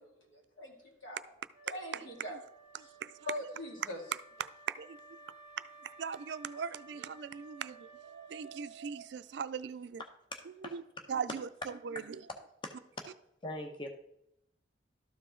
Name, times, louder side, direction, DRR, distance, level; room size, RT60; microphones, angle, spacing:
voice 1, 0.3-1.2 1.7-2.4 3.3-4.0, left 1 dB, 90° left, 2.4 m, -42 dB
Wind instrument woodwind instrument, 1.5-9.1, right 3 dB, 15° right, 1.5 m, -56 dB
voice 2, 1.9-2.4 2.7-3.4 4.4-5.2 5.8-10.0 10.6-10.8 11.1-12.2, right 7 dB, 65° right, 0.3 m, -40 dB
voice 3, 10.3-10.7 12.6-12.7 13.4-13.9, left 1 dB, 25° left, 0.7 m, -41 dB
12.5 x 4.8 x 3.8 m
head